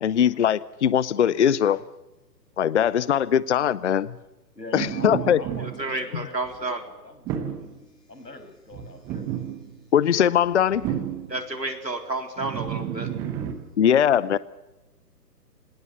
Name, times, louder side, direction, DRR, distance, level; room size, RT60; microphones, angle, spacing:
voice 1, 0.0-1.8 2.6-4.1 4.7-5.4 9.9-10.9 13.8-14.4, left 9 dB, 45° left, 0.7 m, -21 dB
voice 2, 4.5-7.5 7.9-9.7 13.8-14.1, left 2 dB, 85° left, 5.8 m, -44 dB
sound 1, 4.7-6.6 7.3-7.8 8.7-9.8 10.4-11.4 12.4-13.5, right 10 dB, 5° right, 0.7 m, -31 dB
voice 3, 5.6-6.8 11.3-13.1, right 2 dB, 90° right, 4.1 m, -30 dB
26.0 x 18.5 x 6.8 m
figure-of-eight pair, 135°, 49 cm